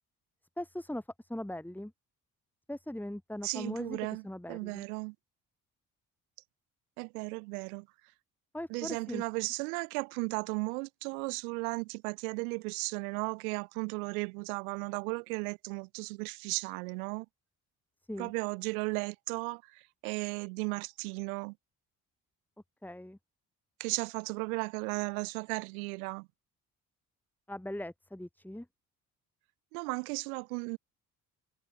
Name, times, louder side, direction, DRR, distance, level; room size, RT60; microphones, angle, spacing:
voice 1, 0.6-1.0 1.3-1.9 2.7-4.0 4.2-4.8 8.5-9.2 18.1-18.3 22.8-23.2 27.5-28.7, left 1 dB, 5° left, 2.6 m, -39 dB
voice 2, 3.4-5.1 7.0-7.9 8.7-17.3 18.2-21.5 23.8-26.3 29.7-30.8, right 31 dB, 80° right, 1.1 m, -35 dB
hypercardioid pair, 50°, 43 cm